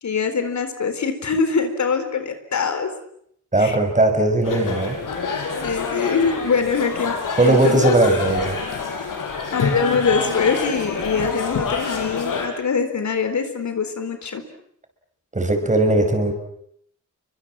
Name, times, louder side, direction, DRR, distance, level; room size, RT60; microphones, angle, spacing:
voice 1, 0.0-2.9 3.6-3.8 5.6-7.2 7.4-7.9 9.5-14.4, left 5 dB, 65° left, 8 dB, 4.1 m, -23 dB
voice 2, 3.5-5.0 7.4-8.6 15.3-16.3, right 2 dB, 25° right, 5 dB, 5.9 m, -18 dB
sound 1, 4.4-12.5, left 5 dB, 85° left, 5.9 m, -27 dB
29.5 x 24.0 x 7.6 m, 0.70 s
wide cardioid pair, 115°, 31 cm